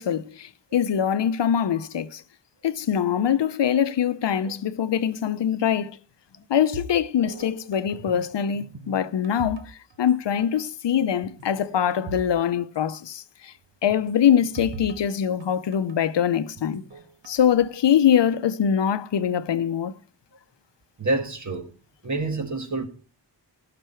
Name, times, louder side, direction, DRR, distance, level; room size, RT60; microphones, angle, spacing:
voice 1, 0.0-2.2 2.6-6.0 6.5-13.5 13.8-16.8 17.3-20.0, left 9 dB, 75° left, 0.7 m, -23 dB
sound 1, 6.7-8.3 8.5-10.1 10.4-10.6 11.2-12.4 12.6-12.7 13.9-16.0 16.6-17.4, right 2 dB, 80° right, 1.5 m, -40 dB
voice 2, 21.0-21.7 22.0-22.9, right 2 dB, 40° right, 1.6 m, -27 dB
17.0 x 6.0 x 4.5 m
wide cardioid pair, 140°, 43 cm